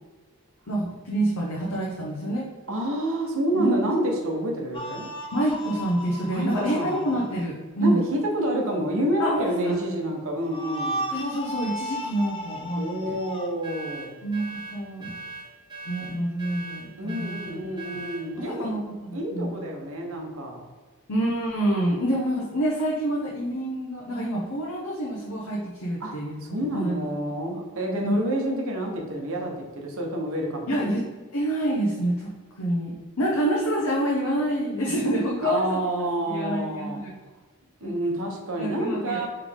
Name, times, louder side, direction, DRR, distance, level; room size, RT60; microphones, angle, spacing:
voice 1, 0.7-2.5 3.5-3.8 5.3-8.0 9.2-9.8 11.1-13.1 14.2-15.1 15.9-17.6 17.9-18.0 18.4-19.5 21.1-27.0 28.0-28.2 30.7-31.0 31.3-32.3 32.6-35.8 36.3-37.1 37.8-37.9 38.6-39.3, right 1 dB, 75° left, -3 dB, 0.8 m, -27 dB
voice 2, 2.7-5.1 6.3-7.0 7.8-11.0 12.7-14.1 17.0-18.7 19.1-20.6 26.0-26.1 26.4-31.0 35.4-37.0 37.8-39.3, right 1 dB, 65° right, 0 dB, 0.9 m, -28 dB
sound 1, 4.7-7.5 10.4-13.5, equal, 25° left, 0.5 m, -35 dB
sound 2, 13.6-18.3, right 3 dB, 20° right, 1.1 m, -39 dB
3.9 x 3.3 x 3.5 m, 1.3 s
head